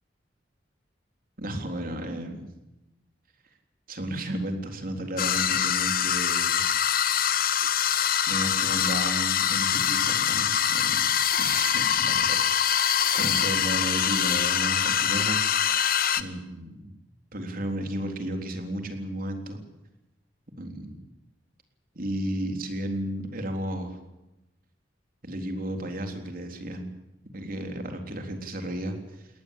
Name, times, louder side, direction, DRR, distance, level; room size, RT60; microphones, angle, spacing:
voice 1, 1.4-2.4 3.9-6.6 8.2-11.1 11.4-15.7 16.2-16.9 17.3-19.6 20.6-20.9 22.0-24.0 25.2-26.9 27.3-29.3, right 1 dB, 50° right, 4 dB, 3.7 m, -33 dB
sound 1, 5.2-16.2, left 9 dB, 55° left, 1.1 m, -24 dB
21.5 x 19.0 x 8.5 m, 0.97 s
head